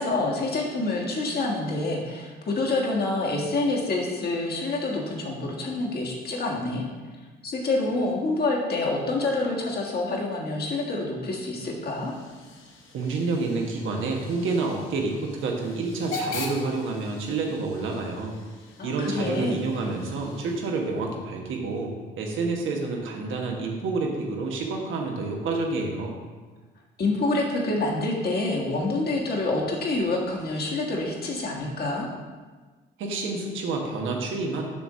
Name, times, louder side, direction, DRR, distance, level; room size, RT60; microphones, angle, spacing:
voice 1, 0.0-6.8 7.4-12.1 18.8-19.6 27.0-32.1, left 2 dB, 55° left, -1 dB, 1.6 m, -27 dB
Hiss / Train / Alarm, 11.4-21.0, left 3 dB, 80° left, 1.2 m, -41 dB
voice 2, 12.9-18.3 18.8-26.1 33.0-34.6, right 3 dB, 80° right, 1 dB, 1.3 m, -29 dB
6.9 x 3.6 x 6.1 m, 1.4 s
cardioid pair, 90°, 20 cm